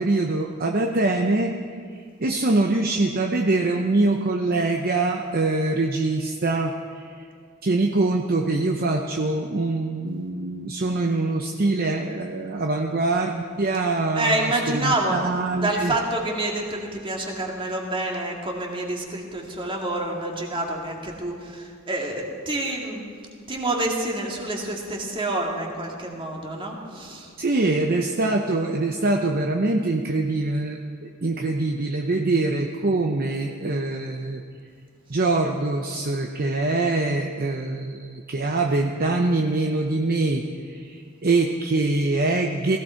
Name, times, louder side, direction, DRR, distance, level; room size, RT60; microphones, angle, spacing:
voice 1, 0.0-1.5 2.2-7.2 7.6-15.9 27.4-34.4 35.1-42.8, right 2 dB, 45° right, 3 dB, 0.8 m, -24 dB
voice 2, 14.1-15.2 15.6-23.0 23.5-27.3, right 2 dB, 25° right, 0 dB, 2.2 m, -28 dB
17.5 x 15.5 x 4.5 m, 2.2 s
head